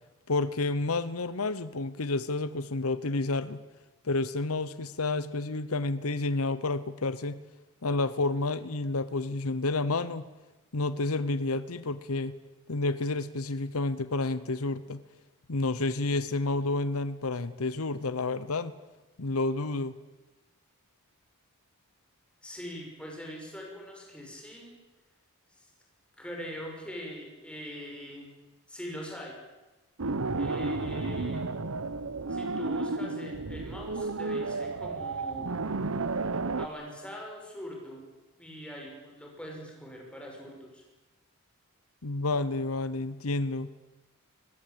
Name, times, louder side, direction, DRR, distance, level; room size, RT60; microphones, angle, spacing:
voice 1, 0.3-3.6 4.0-7.4 7.8-10.3 10.7-12.3 12.7-15.0 15.5-18.7 19.2-20.0 42.0-43.7, left 2 dB, 80° left, 15 dB, 1.0 m, -30 dB
voice 2, 22.4-24.7 25.5-25.7 26.2-28.3 28.7-29.4 30.4-31.4 32.3-35.6 36.6-38.1 38.4-40.8, equal, 5° left, 0 dB, 6.7 m, -42 dB
sound 1, 30.0-36.7, right 3 dB, 70° right, 1.0 m, -32 dB
23.5 x 20.0 x 8.7 m, 1.1 s
head